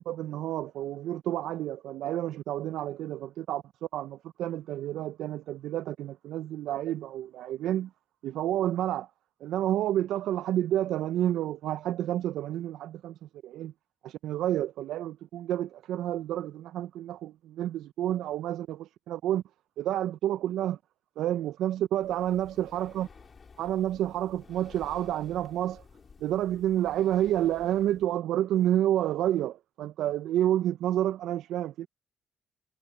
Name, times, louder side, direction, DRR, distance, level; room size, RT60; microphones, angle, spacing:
voice 1, 0.0-3.6 3.9-7.9 8.2-9.1 9.4-13.1 13.4-13.7 14.0-19.4 19.8-20.8 21.2-23.1 23.6-25.8 26.2-31.9, right 12 dB, 85° right, 0.3 m, -29 dB
Breathing, 22.0-28.1, left 5 dB, 40° left, 3.0 m, -53 dB
cardioid pair, 90°, 0 cm